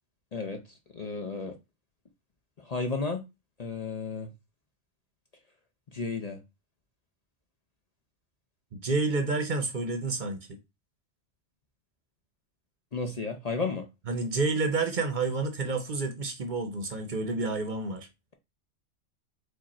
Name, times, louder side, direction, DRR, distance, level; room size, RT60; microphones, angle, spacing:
voice 1, 0.3-1.6 2.6-3.2 3.6-4.3 5.9-6.4 12.9-13.8, left 4 dB, 45° left, 0.6 m, -33 dB
voice 2, 8.7-10.6 14.1-18.1, right 3 dB, 50° right, 0.8 m, -29 dB
4.9 x 2.5 x 4.2 m
omnidirectional pair, 1.1 m